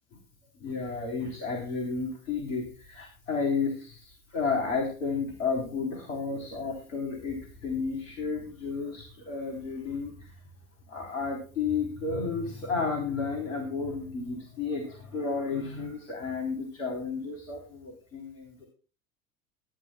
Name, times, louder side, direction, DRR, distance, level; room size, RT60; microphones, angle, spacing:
voice 1, 0.6-10.3 10.9-18.7, left 4 dB, 70° left, 2 dB, 3.5 m, -32 dB
21.0 x 10.5 x 2.2 m, 0.38 s
figure-of-eight pair, 75°, 41 cm